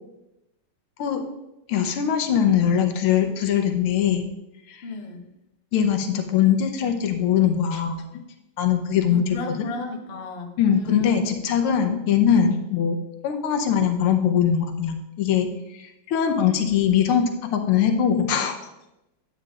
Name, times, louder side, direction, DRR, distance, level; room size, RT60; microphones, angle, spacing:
voice 1, 1.7-4.3 4.7-4.8 5.7-8.2 8.6-9.7 10.6-13.0 13.2-18.6, left 8 dB, 85° left, 5 dB, 1.7 m, -22 dB
voice 2, 4.8-5.2 9.1-11.1, left 3 dB, 45° left, 2 dB, 0.8 m, -34 dB
10.0 x 8.6 x 2.4 m, 0.91 s
omnidirectional pair, 2.4 m